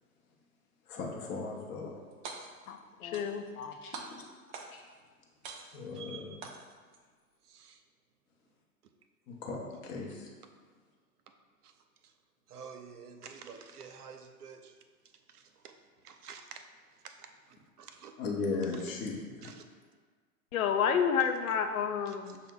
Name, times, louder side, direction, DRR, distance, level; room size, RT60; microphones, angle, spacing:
voice 1, 0.9-1.9 3.8-3.9 5.7-6.3 9.4-10.1 18.2-19.5, left 4 dB, 25° left, -1 dB, 0.7 m, -36 dB
sound 1, 2.1-2.7 3.1-3.7 3.9-4.9 5.4-6.0 6.4-7.0, right 4 dB, 35° right, 0.4 m, -45 dB
voice 2, 2.7-3.7 20.5-22.4, left 7 dB, 65° left, 6 dB, 0.6 m, -30 dB
voice 3, 5.9-6.4 7.5-7.8 11.6-11.7 12.5-14.7 15.3-15.7 16.0-16.7 17.0-18.1 18.7-18.8 19.4-19.6, right 6 dB, 80° right, 7 dB, 0.6 m, -49 dB
6.4 x 2.2 x 3.6 m, 1.5 s
figure-of-eight pair, 105°, 45 cm